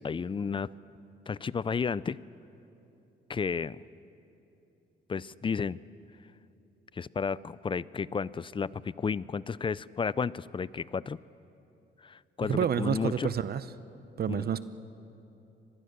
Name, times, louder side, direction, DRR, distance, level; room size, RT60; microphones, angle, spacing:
voice 1, 0.0-0.7 1.3-2.2 3.3-3.8 5.1-5.8 6.9-11.2 12.0-13.3 14.3-14.5, left 5 dB, 25° left, 20 dB, 0.4 m, -32 dB
voice 2, 12.4-13.6 14.2-14.6, right 8 dB, 50° right, 14 dB, 0.7 m, -29 dB
25.0 x 20.0 x 6.7 m, 2.9 s
cardioid pair, 90°, 20 cm